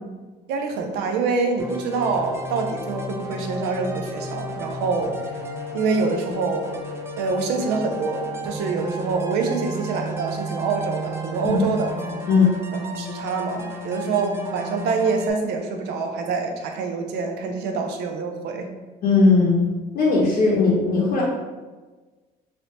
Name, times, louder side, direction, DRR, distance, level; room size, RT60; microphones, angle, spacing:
voice 1, 0.5-5.1 5.7-6.8 7.2-11.9 12.7-18.7, right 4 dB, 85° right, 3 dB, 0.5 m, -26 dB
sound 1, 1.6-15.3, right 1 dB, 15° right, 0.4 m, -33 dB
voice 2, 19.0-19.6 19.9-21.2, left 4 dB, 60° left, -5 dB, 0.7 m, -18 dB
3.2 x 2.7 x 2.8 m, 1.3 s
cardioid pair, 110°, 17 cm